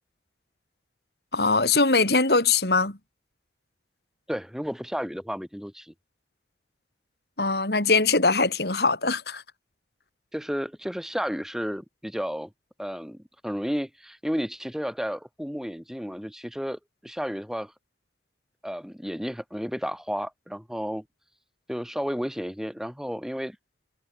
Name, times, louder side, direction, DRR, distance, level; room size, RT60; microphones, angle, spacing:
voice 1, 1.3-3.0 7.4-9.4, left 3 dB, 65° left, 3.7 m, -22 dB
voice 2, 4.3-5.9 10.3-12.5 12.8-17.7 18.6-21.0 21.7-23.6, equal, 5° right, 4.8 m, -32 dB
head